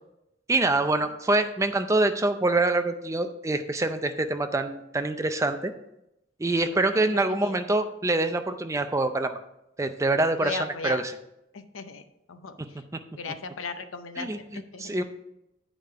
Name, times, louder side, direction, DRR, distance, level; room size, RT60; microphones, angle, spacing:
voice 1, 0.5-5.7 6.4-9.4 9.8-11.0 12.9-13.0 14.2-15.0, right 2 dB, 15° right, 8 dB, 0.4 m, -25 dB
voice 2, 6.4-7.0 7.3-7.6 10.4-11.0 11.5-12.0 12.3-12.8 13.2-14.3 14.5-14.9, left 4 dB, 80° left, 9 dB, 0.7 m, -37 dB
8.5 x 5.1 x 4.5 m, 0.85 s
head